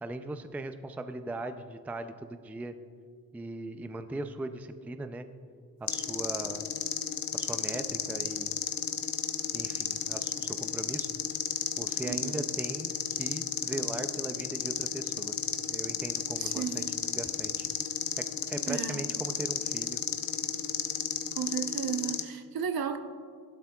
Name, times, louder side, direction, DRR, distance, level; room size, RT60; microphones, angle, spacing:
voice 1, 0.0-2.7 3.3-5.3 5.8-6.6 7.3-8.6 9.5-11.1 11.8-15.3 15.7-17.7 18.2-20.0, right 2 dB, 5° right, 9 dB, 0.4 m, -39 dB
sound 1, 5.9-22.2, left 8 dB, 60° left, 0.9 m, -33 dB
voice 2, 12.0-12.4 16.4-16.9 18.7-19.0 21.3-23.0, right 7 dB, 65° right, 7 dB, 0.9 m, -34 dB
15.5 x 12.0 x 2.3 m, 2.1 s
cardioid pair, 100°, 39 cm